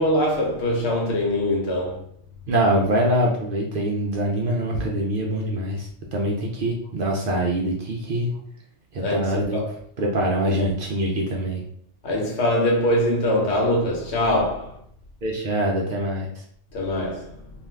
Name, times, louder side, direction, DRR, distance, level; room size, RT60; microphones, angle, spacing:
voice 1, 0.0-2.0 9.0-9.7 12.0-14.8 16.7-17.4, left 1 dB, 65° left, 1.1 m, -23 dB
voice 2, 2.5-8.3 8.9-9.6 10.0-11.6 15.2-16.3, right 1 dB, 60° right, 0.6 m, -24 dB
2.6 x 2.4 x 3.3 m
omnidirectional pair, 1.2 m